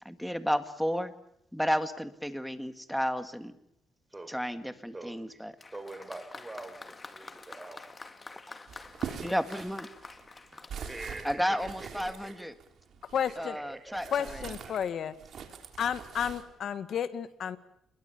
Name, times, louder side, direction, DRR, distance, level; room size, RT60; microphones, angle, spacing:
voice 1, 0.1-1.1 1.5-3.5 4.3-5.5 9.2-9.9 11.2-12.5 13.4-14.1 14.3-14.4, equal, ahead, 9 dB, 2.0 m, -32 dB
voice 2, 4.1-5.4 5.7-7.9 9.5-9.6 10.5-12.5 13.4-14.9, right 2 dB, 15° right, 8 dB, 4.7 m, -46 dB
Applause, 5.6-12.1 13.0-13.1, left 3 dB, 25° left, 2.0 m, -48 dB
sound 1, 8.7-13.4 13.9-16.4, right 7 dB, 60° right, 3.4 m, -43 dB
voice 3, 13.1-13.6 14.1-15.1 15.8-17.6, left 8 dB, 65° left, 12 dB, 1.8 m, -32 dB
27.5 x 22.0 x 7.2 m, 0.75 s
cardioid pair, 90°, 0 cm